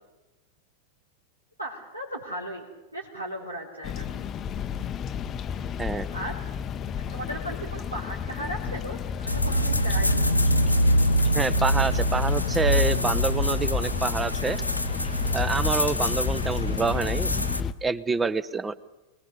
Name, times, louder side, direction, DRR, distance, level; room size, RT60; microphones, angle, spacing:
voice 1, 1.6-2.7 2.9-4.4 6.1-6.4 7.1-10.4, right 1 dB, 85° right, -4 dB, 3.1 m, -36 dB
sound 1, 3.8-17.7, left 7 dB, 30° left, 0.7 m, -32 dB
sound 2, 9.3-17.6, equal, 85° left, 1.1 m, -25 dB
voice 2, 11.3-14.6 15.3-18.8, right 4 dB, 15° right, 18 dB, 0.8 m, -27 dB
25.0 x 20.0 x 6.7 m, 1.1 s
figure-of-eight pair, 90°, 0 cm